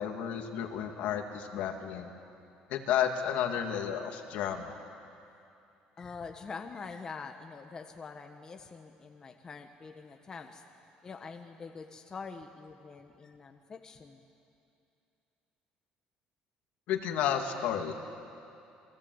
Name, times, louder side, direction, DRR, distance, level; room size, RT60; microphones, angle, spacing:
voice 1, 0.0-2.1 2.7-4.7 16.9-17.9, left 9 dB, 70° left, 4 dB, 2.4 m, -32 dB
voice 2, 6.0-14.2, left 5 dB, 25° left, 5 dB, 1.2 m, -45 dB
29.5 x 23.5 x 8.0 m, 2.7 s
cardioid pair, 155°, 3 cm